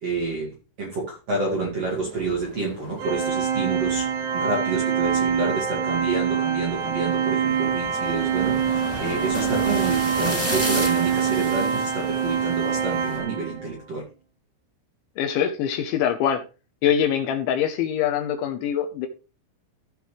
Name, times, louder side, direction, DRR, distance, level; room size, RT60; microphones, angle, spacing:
voice 1, 0.0-4.1 4.3-14.0, right 3 dB, 45° right, 2.1 m, -29 dB
sound 1, 1.8-13.2, left 1 dB, 5° right, 3.2 m, -35 dB
Organ, 3.0-13.7, right 8 dB, 70° right, 3.0 m, -25 dB
voice 2, 15.2-16.4 16.8-19.1, left 9 dB, 80° left, 3.0 m, -23 dB
15.5 x 6.7 x 3.2 m
omnidirectional pair, 5.9 m